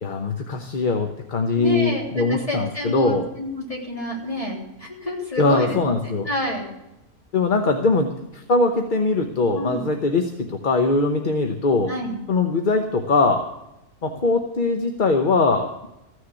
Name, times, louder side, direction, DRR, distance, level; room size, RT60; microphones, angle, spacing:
voice 1, 0.0-3.3 5.4-6.3 7.3-11.9 12.3-13.5 14.0-15.9, left 3 dB, 40° left, 5 dB, 1.0 m, -21 dB
voice 2, 1.6-6.7 9.5-9.9 11.9-12.2, left 1 dB, 25° left, -2 dB, 3.5 m, -29 dB
15.0 x 6.5 x 9.7 m, 0.91 s
omnidirectional pair, 1.5 m